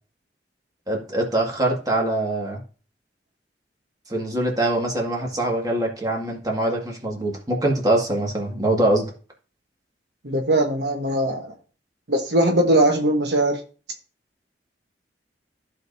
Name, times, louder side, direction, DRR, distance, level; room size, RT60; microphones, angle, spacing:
voice 1, 0.9-2.6 4.1-9.1, right 1 dB, 20° right, 1.9 m, -23 dB
voice 2, 10.2-11.5 12.1-13.6, right 1 dB, 70° right, 1.1 m, -20 dB
14.5 x 5.1 x 2.7 m
head